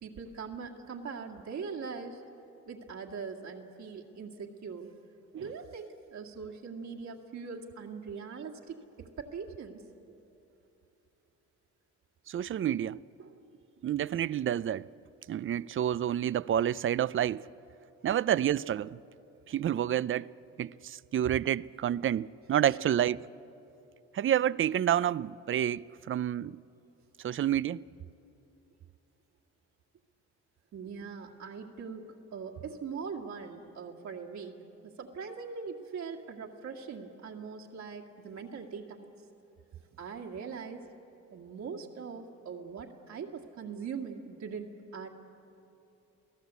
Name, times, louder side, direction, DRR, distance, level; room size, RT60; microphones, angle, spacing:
voice 1, 0.0-2.2 2.7-9.9 13.2-13.3 22.7-22.8 30.7-39.1 40.0-40.9 41.3-45.1, right 5 dB, 65° right, 2.2 m, -41 dB
voice 2, 12.3-13.0 13.8-14.9 15.3-17.5 18.0-19.0 19.5-20.3 20.6-23.3 24.1-26.6 27.2-27.9, right 10 dB, 45° right, 0.5 m, -29 dB
29.0 x 17.5 x 8.2 m
cardioid pair, 90°, 30 cm